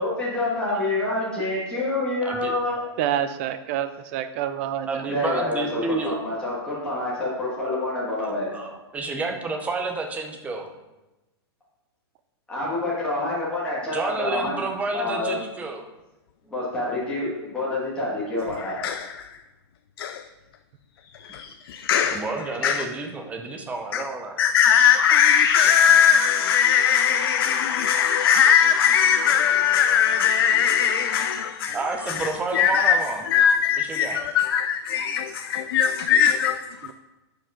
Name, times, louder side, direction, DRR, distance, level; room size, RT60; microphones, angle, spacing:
voice 1, 0.0-2.8 5.1-8.5 12.5-14.6 14.9-15.4 16.5-18.8, left 2 dB, 5° left, 1.8 m, -27 dB
voice 2, 2.2-2.5 4.9-6.3 8.2-10.7 13.9-15.8 22.1-24.4 31.7-33.2 33.8-34.2, right 3 dB, 10° right, 0.8 m, -30 dB
voice 3, 3.0-5.1, right 10 dB, 30° right, 0.3 m, -28 dB
voice 4, 18.6-19.4 20.0-20.2 21.0-22.3 22.6-22.9 23.9-24.0 24.4-36.9, left 8 dB, 60° left, 0.5 m, -20 dB
11.0 x 5.1 x 3.7 m
hypercardioid pair, 155°, 14 cm